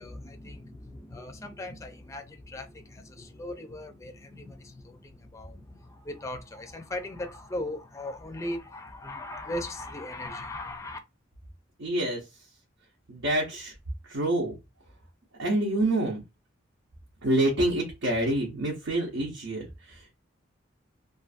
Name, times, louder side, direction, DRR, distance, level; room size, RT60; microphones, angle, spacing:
voice 1, 0.0-11.0, left 1 dB, 15° left, 0.4 m, -38 dB
voice 2, 11.8-12.2 13.1-13.7 14.1-14.6 15.4-16.2 17.2-20.1, right 1 dB, 90° right, 0.8 m, -27 dB
2.5 x 2.5 x 2.4 m
head